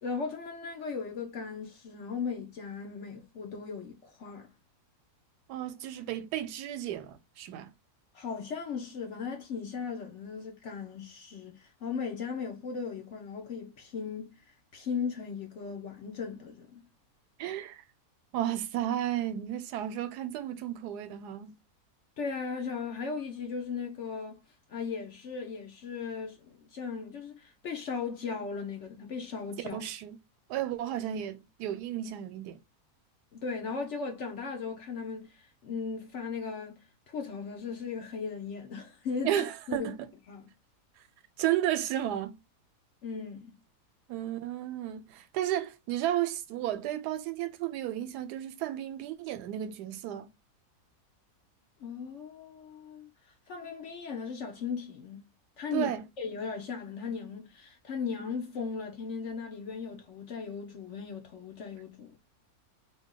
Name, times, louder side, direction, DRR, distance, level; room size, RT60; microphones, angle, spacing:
voice 1, 0.0-4.5 8.1-16.8 22.2-24.4 24.7-29.8 33.3-39.9 40.3-40.5 43.0-43.5 51.8-53.1 53.5-55.3 55.6-55.9 56.2-62.2, left 5 dB, 60° left, 0.9 m, -37 dB
voice 2, 5.5-7.7 17.4-17.8 18.3-21.6 29.6-30.2 30.5-32.6 39.2-40.0 41.4-42.4 44.1-50.3 55.7-56.1, right 12 dB, 85° right, 1.1 m, -33 dB
2.8 x 2.8 x 3.6 m
omnidirectional pair, 1.7 m